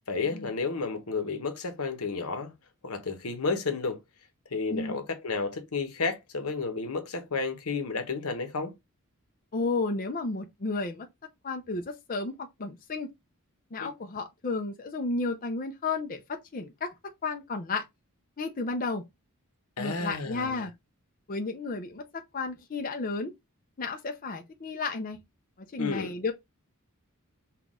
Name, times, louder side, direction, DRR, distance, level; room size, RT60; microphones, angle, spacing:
voice 1, 0.1-2.5 2.8-4.0 4.5-8.7 13.8-13.9 19.8-20.7 25.8-26.1, left 4 dB, 80° left, 1.0 m, -32 dB
voice 2, 9.5-11.1 11.4-13.1 13.7-16.9 17.2-17.8 18.4-19.0 19.8-20.7 21.3-23.3 23.8-25.2 25.7-26.3, left 3 dB, 40° left, 0.5 m, -32 dB
5.8 x 2.3 x 3.6 m
head